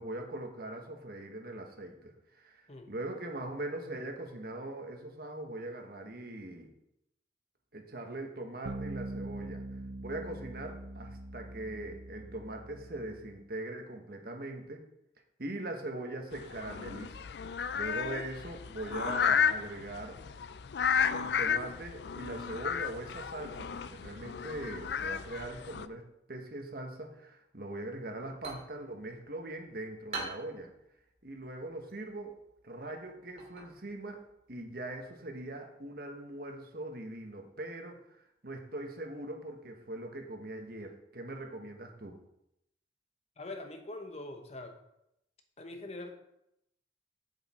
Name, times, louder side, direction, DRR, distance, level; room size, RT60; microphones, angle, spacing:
voice 1, 0.0-6.7 7.7-9.6 10.0-14.8 15.4-17.3 17.7-20.2 21.1-30.7 31.2-32.3 32.6-34.2 34.5-42.2, right 2 dB, 55° right, 3 dB, 1.4 m, -41 dB
sound 1, 8.6-13.4, right 2 dB, 85° right, 0.8 m, -43 dB
sound 2, 16.3-25.9, left 7 dB, 65° left, 0.4 m, -33 dB
sound 3, 28.1-35.6, right 3 dB, 35° right, 2.5 m, -48 dB
voice 2, 43.4-44.8 45.6-46.2, left 2 dB, 35° left, 5 dB, 1.0 m, -43 dB
8.4 x 8.1 x 4.4 m, 0.81 s
head